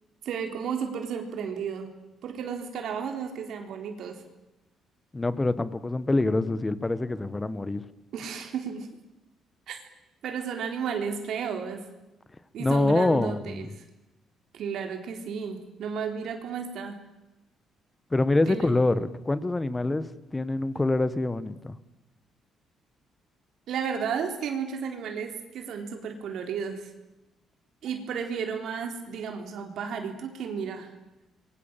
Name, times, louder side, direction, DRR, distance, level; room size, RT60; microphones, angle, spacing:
voice 1, 0.2-1.9 2.2-4.2 8.1-8.9 9.7-9.8 10.2-11.9 12.5-13.7 14.5-17.0 18.5-18.6 23.7-26.9 27.8-30.9, right 6 dB, 65° right, 4 dB, 3.9 m, -33 dB
voice 2, 5.1-7.8 12.6-13.7 18.1-21.8, left 2 dB, 15° left, 14 dB, 1.4 m, -25 dB
27.5 x 23.0 x 7.5 m, 0.97 s
cardioid pair, 140°, 0 cm